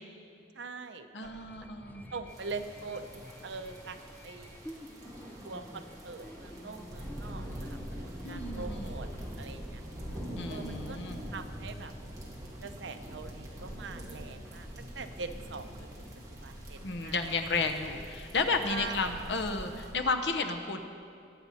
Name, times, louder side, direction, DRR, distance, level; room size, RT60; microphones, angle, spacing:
voice 1, 0.5-1.3 2.1-4.6 5.4-9.1 9.4-9.8 10.5-11.0 11.3-11.9 12.6-17.3 18.7-19.1, right 4 dB, 75° right, 8 dB, 0.7 m, -43 dB
voice 2, 1.1-2.0 8.2-9.1 10.3-11.2 16.8-20.8, left 3 dB, 70° left, 6 dB, 1.0 m, -32 dB
sound 1, 1.2-10.6, left 1 dB, 10° left, 0.5 m, -49 dB
sound 2, 2.3-19.9, equal, 20° right, 2.1 m, -44 dB
22.5 x 7.9 x 4.2 m, 2.5 s
head